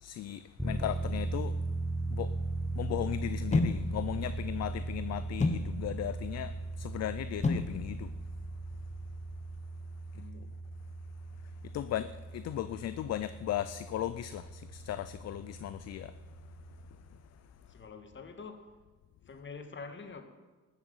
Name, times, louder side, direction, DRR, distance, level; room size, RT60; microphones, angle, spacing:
voice 1, 0.0-1.5 2.1-2.3 2.8-6.5 6.8-8.1 11.7-16.1, left 12 dB, 60° left, 0.5 m, -36 dB
sound 1, 0.6-16.9, right 2 dB, ahead, 0.9 m, -38 dB
sound 2, 3.5-9.6, left 3 dB, 25° left, 1.0 m, -35 dB
voice 2, 10.1-10.7 17.7-18.7 19.3-20.2, left 4 dB, 40° left, 1.8 m, -46 dB
13.5 x 8.1 x 8.1 m
cardioid pair, 90°, 30 cm